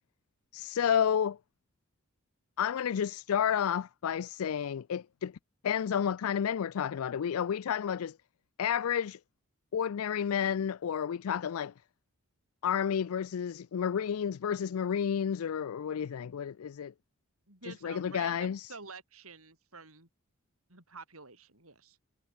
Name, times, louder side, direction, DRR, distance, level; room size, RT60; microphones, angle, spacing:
voice 1, 0.5-1.4 2.6-5.3 5.6-8.2 8.6-9.2 9.7-11.7 12.6-16.9 17.7-18.7, left 8 dB, 80° left, 0.4 m, -31 dB
voice 2, 17.5-20.1 20.7-22.0, right 4 dB, 80° right, 8.0 m, -49 dB
head